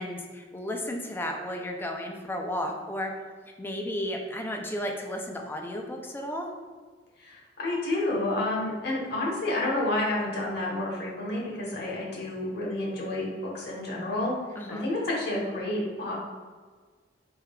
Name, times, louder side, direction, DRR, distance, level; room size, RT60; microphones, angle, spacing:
voice 1, 0.0-3.1 3.6-6.5 14.6-14.9, left 1 dB, 10° left, 2 dB, 0.4 m, -33 dB
voice 2, 7.2-16.2, left 1 dB, 60° left, -3 dB, 1.0 m, -30 dB
4.3 x 3.6 x 2.2 m, 1.5 s
head